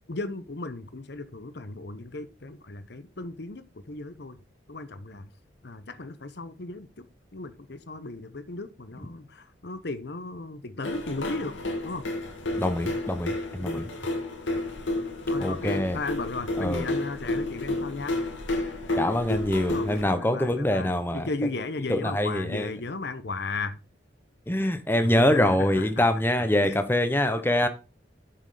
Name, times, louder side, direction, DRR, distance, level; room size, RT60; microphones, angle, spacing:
voice 1, 0.1-4.4 4.7-5.3 5.6-7.1 7.3-11.5 11.8-12.1 15.3-18.2 19.7-23.8 25.0-26.1 26.4-26.8 27.6-27.7, left 3 dB, 60° left, 0.9 m, -35 dB
sound 1, 10.8-20.0, left 2 dB, 90° left, 2.3 m, -31 dB
voice 2, 12.6-13.8 15.4-16.0 16.6-16.9 19.0-21.3 21.9-22.7 24.5-27.7, left 1 dB, 10° left, 0.9 m, -24 dB
7.8 x 6.3 x 5.0 m
head